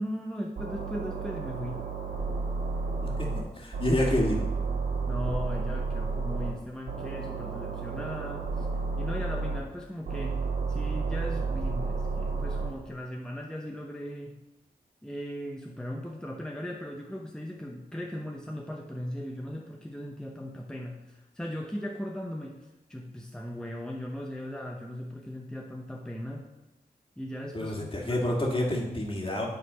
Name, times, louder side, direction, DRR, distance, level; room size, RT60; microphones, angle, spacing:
voice 1, 0.0-1.8 5.1-8.7 9.0-14.4 15.0-26.5 27.2-28.3, equal, 5° left, 0 dB, 0.7 m, -38 dB
sound 1, 0.6-3.4 3.7-6.5 6.9-9.6 10.1-12.7, right 4 dB, 75° right, 2.2 m, -31 dB
voice 2, 3.0-4.5 27.5-29.5, left 1 dB, 35° left, -1 dB, 1.9 m, -29 dB
8.3 x 4.1 x 5.5 m, 1.0 s
cardioid pair, 60°, 16 cm